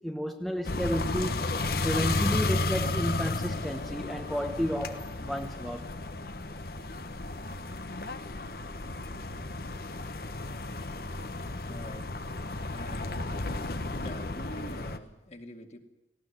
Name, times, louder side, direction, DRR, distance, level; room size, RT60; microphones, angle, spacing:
voice 1, 0.0-1.5 1.8-5.9, equal, ahead, 3 dB, 1.0 m, -32 dB
sound 1, 0.6-15.0, left 2 dB, 55° left, 1.2 m, -33 dB
voice 2, 11.6-12.1 12.7-13.6 14.0-15.8, equal, 40° left, 4 dB, 2.2 m, -45 dB
18.5 x 17.5 x 9.5 m, 0.92 s
head